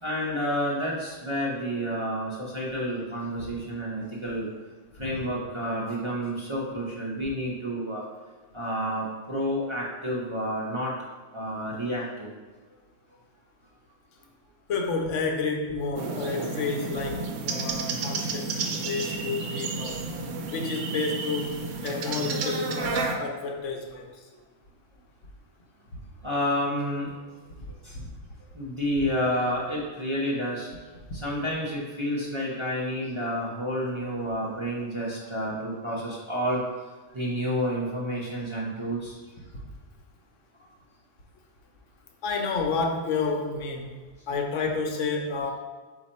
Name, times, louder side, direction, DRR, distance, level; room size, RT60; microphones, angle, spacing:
voice 1, 0.0-4.5 4.9-8.0 8.5-10.9 11.3-12.3 18.3-18.4 26.2-27.2 27.7-28.0 28.5-30.7 31.2-36.7 37.1-39.2, equal, 30° right, -5 dB, 0.6 m, -30 dB
voice 2, 14.7-20.0 20.4-21.6 21.8-24.3 27.5-28.1 31.1-31.2 39.5-39.6 42.2-44.0 44.3-45.5, left 4 dB, 80° left, 2 dB, 1.0 m, -30 dB
sound 1, 16.0-23.2, right 4 dB, 85° right, 0.9 m, -31 dB
4.2 x 2.5 x 4.1 m, 1.4 s
omnidirectional pair, 1.3 m